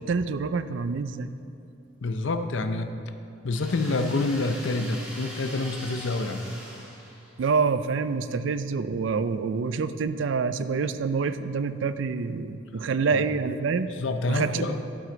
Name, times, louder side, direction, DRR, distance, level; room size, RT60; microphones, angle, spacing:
voice 1, 0.0-1.3 7.4-13.9 14.3-14.7, right 5 dB, 75° right, 12 dB, 0.4 m, -27 dB
voice 2, 2.0-2.9 3.4-6.5 13.1-13.2 14.0-14.8, left 2 dB, 75° left, 8 dB, 0.6 m, -27 dB
sound 1, 3.5-7.6, equal, 5° right, 1.7 m, -42 dB
12.0 x 7.8 x 3.9 m, 2.6 s
head